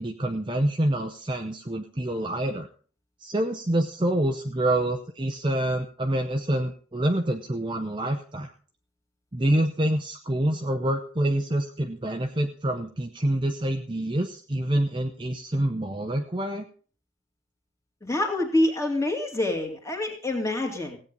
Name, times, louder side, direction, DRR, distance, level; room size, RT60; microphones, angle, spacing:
voice 1, 0.0-2.7 3.2-8.5 9.3-16.7, right 1 dB, 20° right, 5 dB, 0.7 m, -26 dB
voice 2, 18.0-21.0, left 1 dB, 15° left, 2 dB, 2.3 m, -26 dB
16.5 x 8.7 x 5.3 m, 0.42 s
head